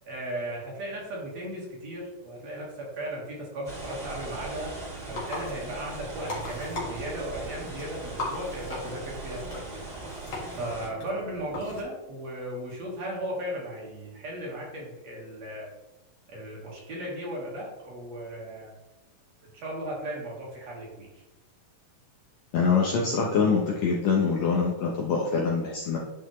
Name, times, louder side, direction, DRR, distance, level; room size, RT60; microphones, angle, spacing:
voice 1, 0.1-9.6 10.5-15.7 16.3-18.7 19.5-21.1, right 1 dB, 55° right, -4 dB, 2.4 m, -36 dB
sound 1, 3.6-10.9, right 3 dB, 85° right, 0.3 m, -40 dB
sound 2, 4.7-11.8, left 2 dB, 45° left, 1.7 m, -39 dB
voice 2, 22.5-26.0, left 5 dB, 70° left, -3 dB, 1.7 m, -24 dB
11.0 x 4.0 x 3.1 m, 1.0 s
omnidirectional pair, 4.0 m